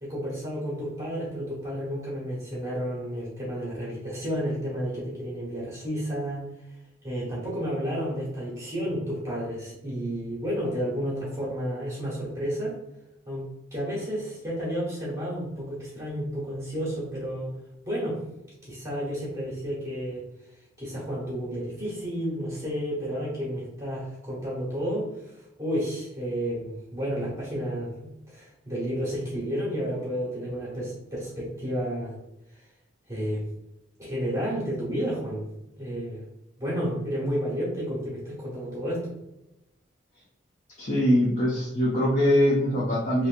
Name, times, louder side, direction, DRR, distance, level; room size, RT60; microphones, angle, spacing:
voice 1, 0.0-6.4 7.0-12.8 13.3-13.4 13.7-17.5 17.8-18.2 18.6-20.2 20.8-32.2 33.1-33.5 34.0-35.5 35.8-36.2 36.6-39.1, equal, 15° right, -7 dB, 1.2 m, -31 dB
voice 2, 40.8-43.3, equal, 40° left, -5 dB, 0.6 m, -22 dB
2.9 x 2.9 x 2.5 m, 0.92 s
head